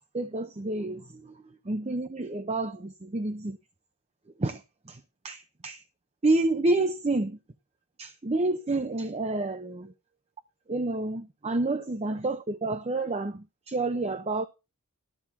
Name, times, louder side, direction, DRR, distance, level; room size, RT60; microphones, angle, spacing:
voice 1, 0.1-1.2 1.7-3.6 4.4-4.6 4.9-5.0 5.2-5.8 6.2-7.4 8.0-9.9 10.7-14.4, right 2 dB, 30° right, 0.6 m, -29 dB
13.0 x 4.4 x 6.9 m
head